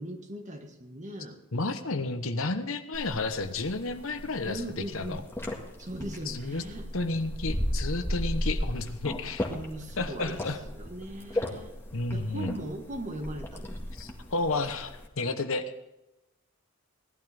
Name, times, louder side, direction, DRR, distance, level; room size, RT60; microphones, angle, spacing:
voice 1, 0.0-1.4 4.5-5.2 5.8-6.9 9.5-10.5 10.7-11.7 12.1-13.7, right 1 dB, 35° right, 5 dB, 1.6 m, -39 dB
voice 2, 1.5-5.2 6.3-6.6 6.9-9.5 10.0-10.6 11.3-11.5 11.9-12.6 13.9-15.8, left 3 dB, 65° left, 9 dB, 1.0 m, -32 dB
sound 1, 2.9-15.1, left 1 dB, 10° left, 1.8 m, -35 dB
18.0 x 12.0 x 3.5 m, 0.97 s
head